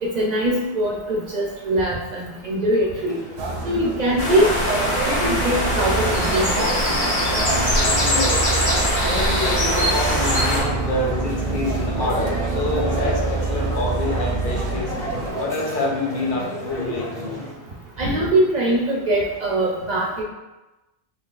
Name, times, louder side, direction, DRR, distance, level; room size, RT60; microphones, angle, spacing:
voice 1, 0.0-3.2 3.6-6.7 18.0-20.2, right 1 dB, 55° right, -3 dB, 0.6 m, -22 dB
sound 1, 2.9-17.5, right 1 dB, 5° left, 0.6 m, -33 dB
sound 2, 3.4-15.3, right 3 dB, 80° right, 0.8 m, -26 dB
sound 3, 4.2-10.6, left 1 dB, 90° left, 1.4 m, -22 dB
voice 2, 7.8-14.9 15.4-17.3, left 2 dB, 60° left, -1 dB, 0.7 m, -27 dB
3.9 x 2.8 x 2.4 m, 1.1 s
omnidirectional pair, 1.0 m